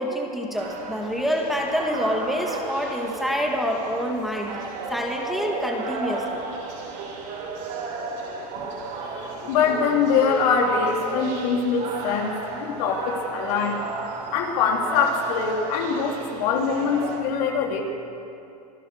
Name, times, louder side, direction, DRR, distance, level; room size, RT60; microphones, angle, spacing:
voice 1, 0.0-4.6 4.9-6.4, equal, ahead, -1 dB, 2.2 m, -27 dB
sound 1, 0.5-17.2, right 3 dB, 55° right, 5.9 m, -34 dB
voice 2, 8.6-13.8 14.3-17.8, left 6 dB, 65° left, 1 dB, 3.7 m, -24 dB
26.0 x 15.5 x 6.7 m, 2.6 s
supercardioid pair, 130°, 21 cm